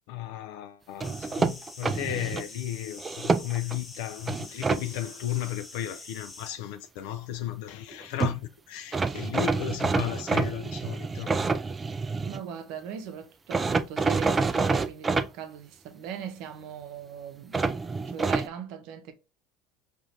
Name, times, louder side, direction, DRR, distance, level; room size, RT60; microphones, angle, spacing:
voice 1, 0.1-11.6, left 12 dB, 75° left, 0.3 m, -34 dB
sound 1, 1.0-6.5, left 2 dB, 20° left, 0.8 m, -46 dB
sound 2, 1.0-2.4 3.0-3.8 4.3-4.8 7.9-8.0 8.2-8.4 8.9-12.4 13.5-15.3 17.5-18.5, right 4 dB, 25° right, 0.3 m, -27 dB
voice 2, 12.2-17.7 18.1-19.1, right 8 dB, 65° right, 0.7 m, -39 dB
4.9 x 2.5 x 2.8 m
hypercardioid pair, 85°, 0 cm